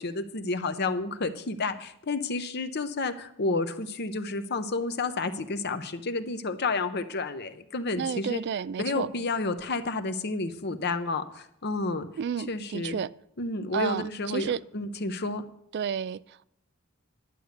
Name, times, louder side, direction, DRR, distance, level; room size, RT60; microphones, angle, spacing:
voice 1, 0.0-8.4 8.8-12.1 12.5-13.0 13.4-15.5, left 3 dB, 50° left, 0.8 m, -30 dB
voice 2, 8.0-9.1 12.2-13.1 13.7-14.6 15.7-16.4, right 7 dB, 50° right, 0.3 m, -31 dB
11.0 x 8.2 x 6.6 m
head